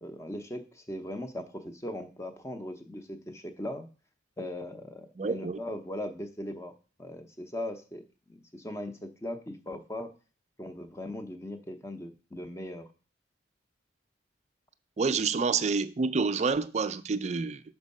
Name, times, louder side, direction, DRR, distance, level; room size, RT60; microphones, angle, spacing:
voice 1, 0.0-3.9 4.4-6.7 7.0-10.1 10.6-12.9, left 1 dB, 15° left, 0.6 m, -39 dB
voice 2, 5.2-5.6 15.0-17.6, right 4 dB, 35° right, 0.3 m, -28 dB
6.1 x 4.5 x 5.3 m
head